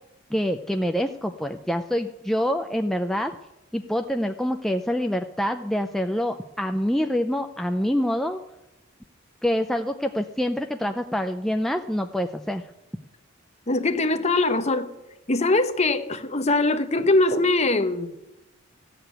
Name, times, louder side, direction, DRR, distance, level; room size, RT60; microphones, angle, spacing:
voice 1, 0.3-3.3 3.7-8.4 9.4-12.6, equal, ahead, 0.4 m, -26 dB
voice 2, 13.7-14.9 15.3-18.2, left 2 dB, 35° left, 0.9 m, -22 dB
15.0 x 6.8 x 9.1 m
head